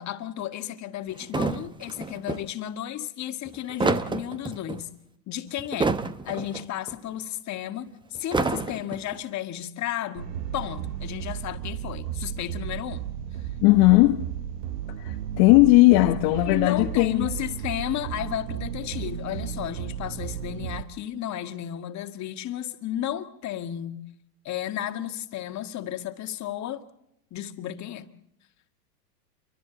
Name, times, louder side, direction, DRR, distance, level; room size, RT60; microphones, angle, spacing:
voice 1, 0.0-4.9 5.3-5.9 6.3-13.1 16.5-24.0 24.5-26.8 27.3-28.1, left 11 dB, 35° left, 1.9 m, -33 dB
sound 1, 1.2-2.4 3.5-4.8 5.6-6.6 6.9-7.0 8.2-9.2, right 3 dB, 10° right, 1.0 m, -28 dB
sound 2, 10.2-20.8, right 10 dB, 75° right, 1.5 m, -34 dB
voice 2, 13.6-14.3 15.0-17.3, left 20 dB, 50° left, 1.4 m, -18 dB
29.0 x 24.0 x 4.0 m
hypercardioid pair, 110°, 49 cm